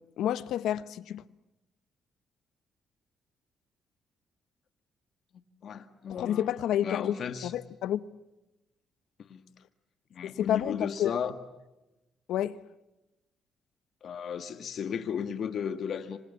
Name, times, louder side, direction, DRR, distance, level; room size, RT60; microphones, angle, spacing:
voice 1, 0.2-1.2 6.2-7.1 7.4-8.0 10.2-11.1 12.3-12.6, left 11 dB, 80° left, 0.9 m, -29 dB
voice 2, 5.6-6.5 6.8-7.5 9.3-9.4 10.1-11.4 14.0-16.2, left 7 dB, 60° left, 1.8 m, -34 dB
26.5 x 26.0 x 8.4 m
cardioid pair, 90°, 0 cm